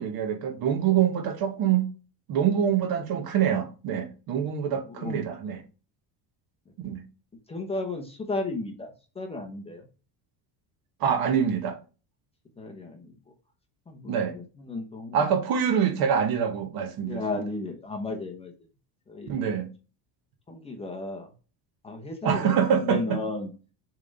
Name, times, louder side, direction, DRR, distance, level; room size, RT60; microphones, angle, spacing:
voice 1, 0.0-1.9 2.3-5.6 6.8-7.0 11.0-11.8 14.1-14.3 15.1-17.2 19.3-19.7 22.2-23.2, right 8 dB, 50° right, 1.2 m, -25 dB
voice 2, 4.9-5.5 7.5-8.9 9.1-9.8 12.6-13.1 13.9-15.2 17.0-18.5 19.1-19.3 20.5-21.3 21.8-23.5, left 2 dB, 15° left, 0.9 m, -34 dB
6.8 x 3.5 x 4.0 m
cardioid pair, 175°, 45 cm